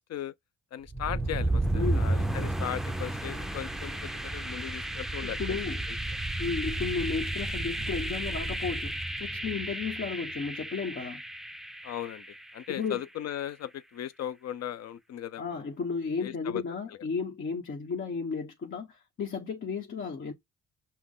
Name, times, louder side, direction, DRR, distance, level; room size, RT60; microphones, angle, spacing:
voice 1, 0.7-5.6 5.9-6.0 11.8-12.2 12.5-15.4 16.2-16.6, left 10 dB, 60° left, 0.6 m, -37 dB
sound 1, 0.9-12.7, right 1 dB, ahead, 0.5 m, -32 dB
voice 2, 1.7-2.1 5.2-5.8 6.4-11.2 12.7-13.0 15.4-20.3, left 5 dB, 40° left, 1.1 m, -34 dB
5.9 x 2.1 x 3.7 m
cardioid pair, 90°, 30 cm